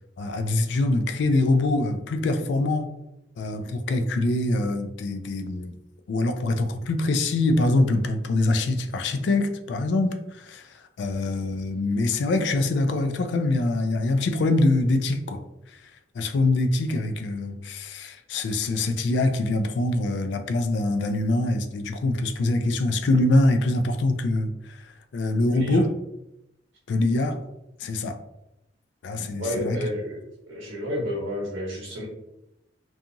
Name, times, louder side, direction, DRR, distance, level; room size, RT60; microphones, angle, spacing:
voice 1, 0.2-2.9 3.4-5.7 6.1-15.4 15.7-25.9 26.9-27.4 27.8-28.2 29.0-29.9, left 2 dB, 70° left, 8 dB, 0.3 m, -24 dB
voice 2, 29.4-30.2 30.5-32.1, equal, 85° right, -4 dB, 0.7 m, -30 dB
2.8 x 2.3 x 2.5 m, 0.88 s
head